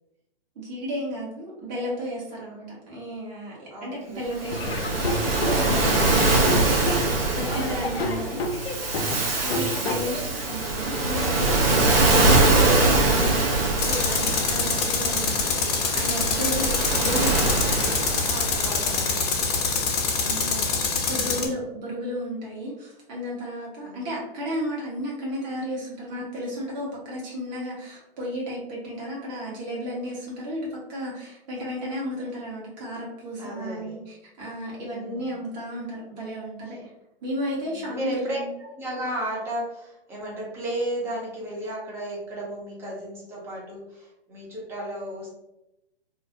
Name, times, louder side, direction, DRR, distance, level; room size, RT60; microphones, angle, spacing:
voice 1, 0.6-5.2 5.4-8.4 9.0-11.9 12.2-17.7 20.2-36.9 37.2-38.5, equal, 45° right, -4 dB, 0.9 m, -33 dB
voice 2, 3.7-4.2 7.5-8.0 9.4-10.1 16.3-16.5 18.3-19.9 21.2-21.6 23.8-24.0 33.4-34.0 34.8-35.5 37.6-45.4, right 1 dB, 10° right, -4 dB, 0.5 m, -35 dB
Waves surf, 4.3-19.8, right 2 dB, 75° right, 0.8 m, -23 dB
Laughter / Drum, 4.5-10.4, left 1 dB, 90° left, 0.4 m, -31 dB
Tools, 13.8-21.5, left 4 dB, 40° left, 0.5 m, -25 dB
2.4 x 2.0 x 2.5 m, 0.89 s
figure-of-eight pair, 125°, 30 cm